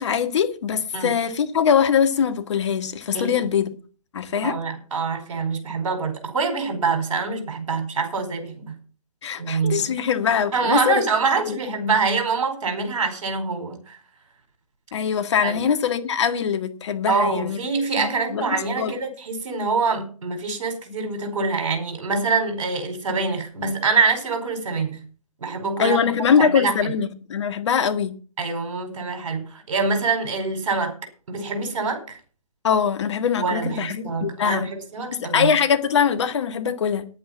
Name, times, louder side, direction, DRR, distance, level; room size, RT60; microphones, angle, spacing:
voice 1, 0.0-3.7 4.1-4.6 9.2-11.0 11.5-11.6 14.9-17.6 18.0-18.9 25.8-28.1 32.6-34.7 35.1-37.1, left 7 dB, 50° left, 1.8 m, -22 dB
voice 2, 4.4-8.7 9.4-9.9 10.5-14.0 15.4-15.6 17.1-25.0 25.4-26.0 26.4-26.9 28.4-30.9 31.3-32.2 33.4-35.5, right 4 dB, 55° right, 4.7 m, -25 dB
10.0 x 8.6 x 7.4 m
figure-of-eight pair, 135°, 19 cm